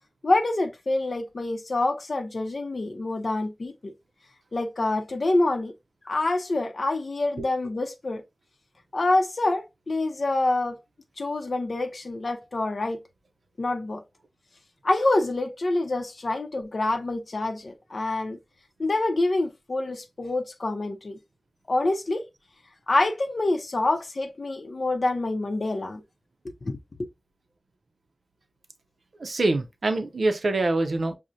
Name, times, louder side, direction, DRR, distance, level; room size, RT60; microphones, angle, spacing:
voice 1, 0.2-3.9 4.5-5.7 6.1-8.2 8.9-10.8 11.2-13.0 13.6-14.0 14.8-18.4 18.8-21.2 21.7-22.2 22.9-26.0 26.6-27.1, left 2 dB, 60° left, 0.5 m, -26 dB
voice 2, 29.2-31.1, right 2 dB, 75° right, 0.5 m, -25 dB
6.1 x 2.0 x 2.6 m
wide cardioid pair, 85°, 0 cm